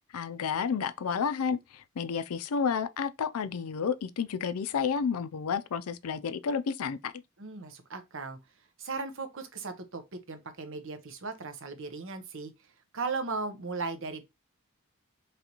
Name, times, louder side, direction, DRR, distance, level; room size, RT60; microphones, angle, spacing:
voice 1, 0.1-7.1, left 6 dB, 80° left, 0.4 m, -31 dB
voice 2, 7.4-8.4 8.8-12.5 12.9-14.2, right 4 dB, 60° right, 0.8 m, -37 dB
4.0 x 3.3 x 2.9 m
head